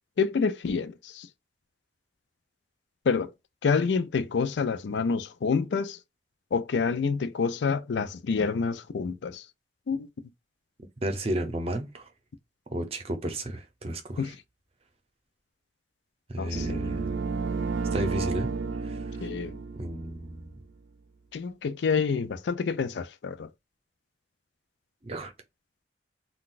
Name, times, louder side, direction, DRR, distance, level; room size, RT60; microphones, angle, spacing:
voice 1, 0.2-1.3 3.1-3.3 3.6-6.0 6.5-9.4 9.9-10.1 14.2-14.3 16.4-16.8 19.2-19.5 21.3-23.5, left 5 dB, 80° left, 0.4 m, -27 dB
voice 2, 11.0-12.1 12.7-14.3 16.3-17.1 17.9-19.3 19.8-20.5 25.0-25.3, right 1 dB, 35° right, 0.7 m, -33 dB
sound 1, 16.5-20.5, right 4 dB, 90° right, 0.4 m, -31 dB
3.8 x 2.3 x 2.4 m
head